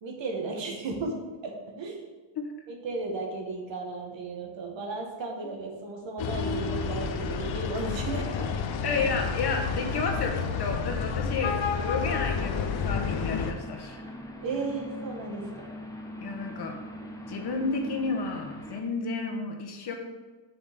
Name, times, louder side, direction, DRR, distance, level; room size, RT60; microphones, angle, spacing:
voice 1, 0.0-1.2 1.4-2.1 2.7-8.2 9.0-9.1 14.4-15.8, right 3 dB, 70° right, 0 dB, 1.7 m, -35 dB
sound 1, 6.2-13.5, left 5 dB, 70° left, 0.8 m, -30 dB
voice 2, 8.8-14.0 16.2-16.8 17.3-19.9, left 4 dB, 55° left, 3 dB, 1.4 m, -31 dB
sound 2, 12.0-18.8, equal, 5° left, 0.8 m, -42 dB
7.1 x 6.2 x 3.6 m, 1.3 s
cardioid pair, 115°, 47 cm